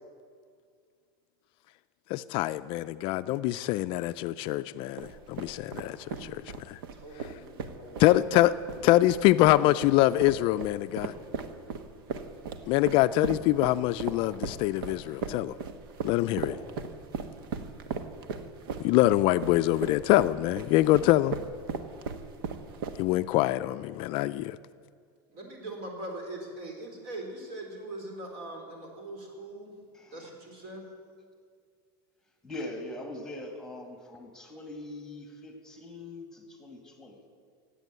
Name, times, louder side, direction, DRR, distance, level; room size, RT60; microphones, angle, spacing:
voice 1, 2.1-6.4 6.7-6.8 8.0-8.5 8.8-11.1 12.7-15.6 16.0-16.6 18.8-21.4 23.0-24.6, left 16 dB, 50° left, 13 dB, 0.4 m, -24 dB
sound 1, 5.0-23.3, right 5 dB, 80° right, 1.2 m, -37 dB
voice 2, 6.9-8.0 25.3-29.7 30.1-30.8, right 1 dB, 50° right, 2 dB, 4.0 m, -41 dB
voice 3, 29.9-30.3 32.4-37.2, left 1 dB, 5° left, 3 dB, 2.0 m, -42 dB
16.5 x 8.4 x 9.2 m, 2.1 s
supercardioid pair, 140°, 12 cm